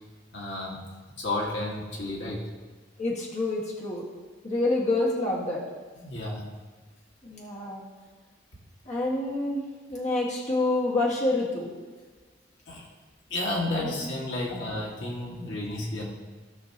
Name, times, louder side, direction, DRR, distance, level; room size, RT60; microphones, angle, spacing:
voice 1, 0.3-0.8 1.2-2.4 6.0-6.4 12.7-12.8 13.3-16.1, left 2 dB, 70° left, -3 dB, 1.7 m, -32 dB
voice 2, 3.0-4.0 4.4-5.6 7.2-7.8 8.9-9.6 9.9-11.7 13.8-14.1 14.5-14.6, left 2 dB, 40° left, -4 dB, 1.7 m, -27 dB
16.5 x 5.9 x 2.9 m, 1.4 s
head